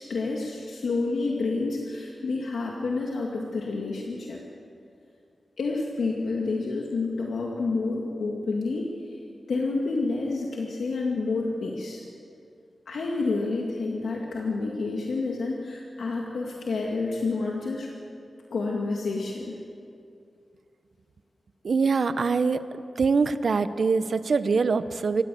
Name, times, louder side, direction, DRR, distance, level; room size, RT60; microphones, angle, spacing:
voice 1, 0.0-4.4 5.6-9.2 9.5-12.0 12.9-17.9 18.5-19.6, left 3 dB, 90° left, -1 dB, 2.1 m, -29 dB
voice 2, 21.6-22.6 23.0-25.2, right 4 dB, 65° right, 12 dB, 0.9 m, -23 dB
27.0 x 14.5 x 7.7 m, 2.5 s
wide cardioid pair, 90°, 0 cm